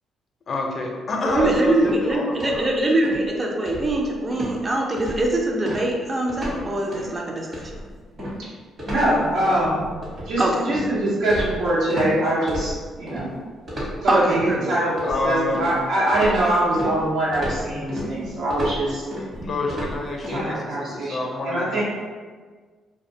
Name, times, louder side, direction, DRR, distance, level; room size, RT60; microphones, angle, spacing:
voice 1, 0.5-2.7 6.4-6.7 14.4-15.8 19.4-21.8, left 2 dB, 45° left, 0 dB, 0.4 m, -28 dB
voice 2, 1.2-7.7 10.4-10.7 14.1-14.6, right 1 dB, 30° right, 0 dB, 0.4 m, -23 dB
sound 1, 1.3-2.1 2.4-2.7 3.0-3.3 3.7-4.1 4.3-4.6 5.0-5.3 5.7-6.6 6.9-7.1 7.5-12.1 12.5-13.3 13.7-14.5 15.0-15.8 16.1-20.4, equal, 45° right, 0.9 m, -32 dB
voice 3, 8.9-9.8 10.3-13.3 14.0-19.1 20.3-21.2 21.4-21.8, right 1 dB, 90° right, -7 dB, 0.9 m, -23 dB
2.3 x 2.1 x 2.7 m, 1.5 s
cardioid pair, 90°, 0 cm